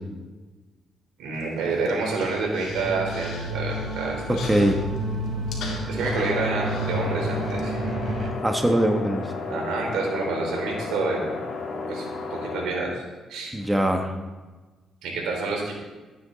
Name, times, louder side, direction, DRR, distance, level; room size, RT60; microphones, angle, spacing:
voice 1, 1.2-4.2 4.5-4.7 5.6-7.7 9.5-11.4 11.9-13.0 13.3-13.6 15.0-15.7, right 3 dB, 85° right, -2 dB, 3.9 m, -28 dB
Human voice, 1.3-7.6, left 4 dB, 80° left, 2.4 m, -42 dB
sound 1, 2.6-8.3, right 1 dB, 55° right, 3.3 m, -30 dB
voice 2, 4.3-4.8 8.4-9.3 13.5-14.1, right 1 dB, 10° right, 4 dB, 1.1 m, -22 dB
sound 2, 6.0-12.6, left 4 dB, 60° left, 2.6 m, -33 dB
13.5 x 9.3 x 4.0 m, 1.2 s
cardioid pair, 90°, 0 cm